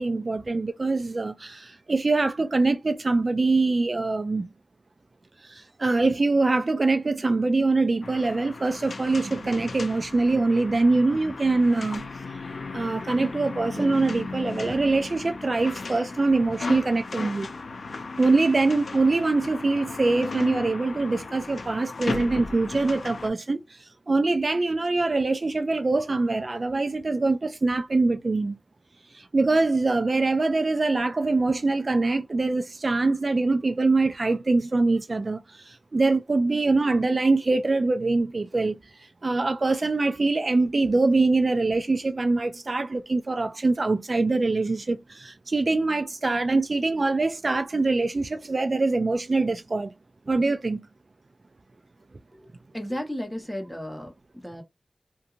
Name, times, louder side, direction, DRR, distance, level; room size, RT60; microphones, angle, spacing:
voice 1, 0.0-4.5 5.4-12.1 12.7-17.5 18.2-28.6 29.1-38.8 39.2-49.9 50.3-50.9, right 3 dB, 55° right, 0.3 m, -24 dB
sound 1, 8.0-23.3, left 3 dB, 85° left, 0.5 m, -36 dB
voice 2, 52.7-54.6, equal, 5° left, 1.2 m, -34 dB
2.7 x 2.5 x 2.4 m
wide cardioid pair, 60°, 0 cm